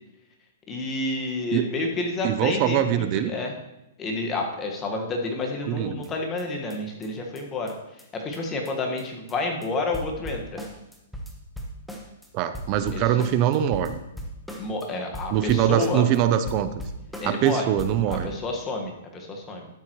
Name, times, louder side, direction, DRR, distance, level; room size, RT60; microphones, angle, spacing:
voice 1, 0.7-3.5 4.0-10.6 12.9-13.3 14.6-16.1 17.2-17.7 18.1-19.7, left 2 dB, 20° left, 1 dB, 1.5 m, -30 dB
voice 2, 2.2-3.3 5.7-6.0 12.3-14.0 15.3-16.7 17.2-18.3, right 10 dB, 40° right, 11 dB, 0.6 m, -23 dB
sound 1, 6.0-6.1 6.4-6.5 6.7-6.8 7.0-7.1 7.4-7.5 7.7-7.8 8.0-8.1 8.3-8.4 8.7-8.8 9.0-9.4 9.6-9.7 9.9-12.3 12.5-14.9 15.1-16.2 16.5-17.5 17.8-18.3, equal, 5° left, 1.2 m, -38 dB
12.5 x 7.5 x 3.1 m, 0.90 s
hypercardioid pair, 135°, 0 cm